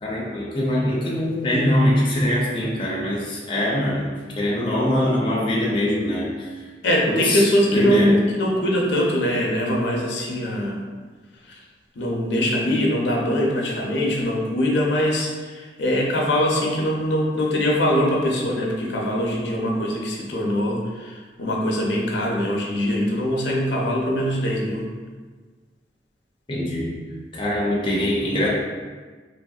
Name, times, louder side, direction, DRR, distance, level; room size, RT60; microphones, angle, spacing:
voice 1, 0.0-6.5 7.1-8.2 26.5-26.9 27.3-28.5, left 1 dB, 25° left, -4 dB, 0.4 m, -23 dB
voice 2, 6.8-10.8 11.5-11.6 12.0-24.9, equal, 80° left, -2 dB, 0.5 m, -22 dB
3.0 x 2.6 x 2.3 m, 1.4 s
head